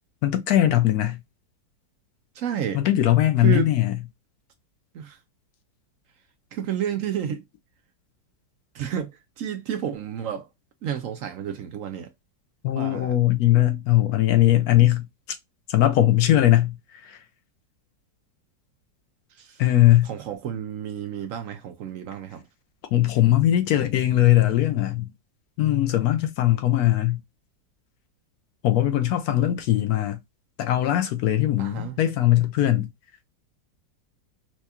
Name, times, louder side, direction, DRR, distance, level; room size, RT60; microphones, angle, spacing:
voice 1, 0.2-1.2 2.7-4.0 12.6-15.1 15.7-16.8 17.0-17.2 19.6-20.1 22.9-25.0 25.6-27.2 28.6-30.2 30.6-32.9, left 14 dB, 70° left, 0.9 m, -20 dB
voice 2, 2.4-2.8 3.4-3.7 4.9-5.2 6.5-7.4 8.7-9.1 9.4-10.5 10.8-12.1 12.7-13.2 19.4-19.5 20.0-22.4 31.6-32.0, right 9 dB, 70° right, 0.7 m, -30 dB
4.5 x 2.2 x 2.8 m
omnidirectional pair, 1.9 m